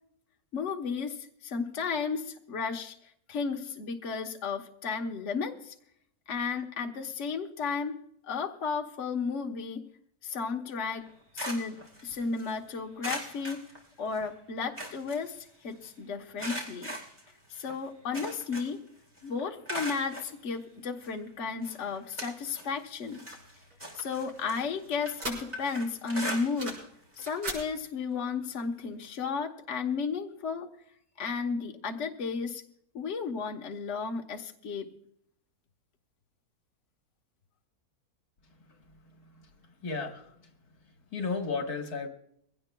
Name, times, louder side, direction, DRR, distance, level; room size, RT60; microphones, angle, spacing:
voice 1, 0.5-2.9 3.3-5.7 6.3-8.0 8.2-9.8 10.2-11.1 11.3-13.6 14.0-16.9 17.5-18.8 19.2-23.2 23.9-26.8 27.2-30.7 31.2-32.6 32.9-34.9, left 5 dB, 55° left, 1.3 m, -33 dB
sound 1, 11.0-12.5 13.0-14.3 14.6-15.9 16.4-18.9 19.2-20.3 21.0-21.1 21.6-22.7 23.0-26.9 27.1-27.4 27.7-27.8 29.0-29.1, equal, 20° right, 3.3 m, -40 dB
sound 2, 23.3-25.8 26.2-26.9 27.2-27.6, right 2 dB, 85° right, 5.1 m, -40 dB
voice 2, 39.0-39.5 39.8-40.5 41.1-42.1, left 4 dB, 80° left, 2.0 m, -35 dB
22.5 x 17.0 x 2.3 m
omnidirectional pair, 1.6 m